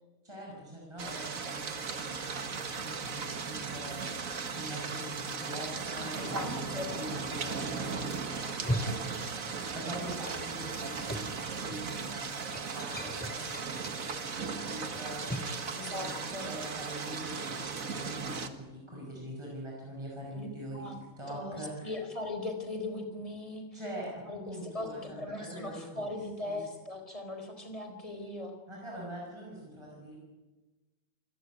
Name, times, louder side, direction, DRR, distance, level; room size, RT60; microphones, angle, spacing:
voice 1, 0.2-20.9 21.2-21.9 23.7-26.0 26.4-26.6 28.7-30.2, equal, 20° right, -3 dB, 6.5 m, -43 dB
sound 1, 1.0-18.5, right 5 dB, 65° right, 2.1 m, -37 dB
voice 2, 6.2-6.9 15.7-16.5 20.3-20.9 21.3-23.8 24.3-28.5, left 2 dB, 20° left, 4 dB, 4.4 m, -39 dB
sound 2, 8.4-9.8 10.1-15.6, equal, 5° left, 2.4 m, -39 dB
28.0 x 17.0 x 9.9 m, 1.2 s
omnidirectional pair, 1.5 m